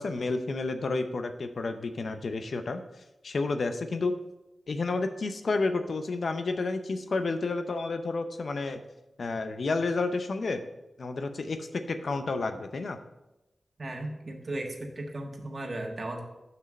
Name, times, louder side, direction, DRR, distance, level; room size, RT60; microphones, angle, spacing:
voice 1, 0.0-2.8 3.2-4.2 4.7-8.8 9.2-10.6 11.0-13.0, left 3 dB, 75° left, 8 dB, 0.7 m, -30 dB
voice 2, 13.8-16.2, right 1 dB, 55° right, 2 dB, 1.5 m, -36 dB
6.2 x 6.0 x 5.3 m, 0.96 s
cardioid pair, 40°, 0 cm